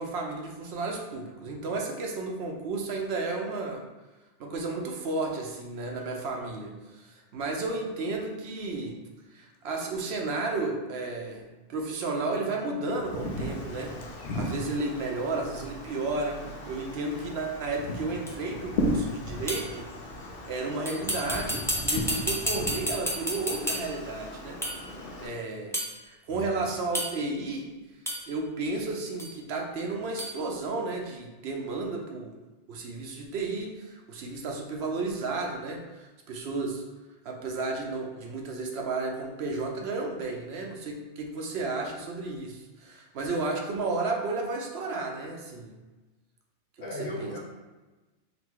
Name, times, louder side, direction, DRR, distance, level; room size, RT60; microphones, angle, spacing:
voice 1, 0.0-3.8 4.4-9.0 9.3-19.9 20.5-24.6 25.2-25.8 26.1-27.7 28.3-32.4 32.7-36.8 37.2-45.8 47.0-47.4, right 3 dB, 65° right, 1 dB, 0.8 m, -33 dB
Wind, 12.9-25.3, left 1 dB, 60° left, 0.8 m, -36 dB
sound 1, 18.3-18.4 19.5-19.8 20.8-24.0 24.6-24.9 25.7-25.9 26.9-27.4 28.0-28.3 29.2-29.3 30.2-30.4, equal, 5° left, 0.3 m, -31 dB
voice 2, 46.8-47.4, left 2 dB, 40° left, -4 dB, 1.0 m, -36 dB
4.0 x 2.2 x 4.5 m, 1.2 s
omnidirectional pair, 1.2 m